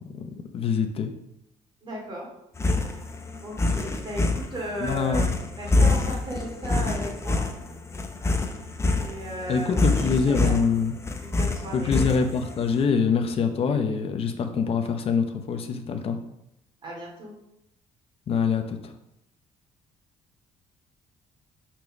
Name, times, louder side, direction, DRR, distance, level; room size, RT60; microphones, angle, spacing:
voice 1, 0.5-1.1 4.8-5.3 9.5-10.9 11.7-16.2 18.3-18.9, left 5 dB, 45° left, 6 dB, 0.9 m, -24 dB
voice 2, 1.8-2.3 2.9-3.1 3.4-7.4 9.0-10.0 10.4-10.6 11.2-12.0 16.8-17.3, right 1 dB, 35° right, -3 dB, 2.5 m, -36 dB
sound 1, 2.6-12.6, left 2 dB, 20° left, 0.7 m, -25 dB
5.2 x 4.5 x 6.2 m, 0.82 s
cardioid pair, 130°, 14 cm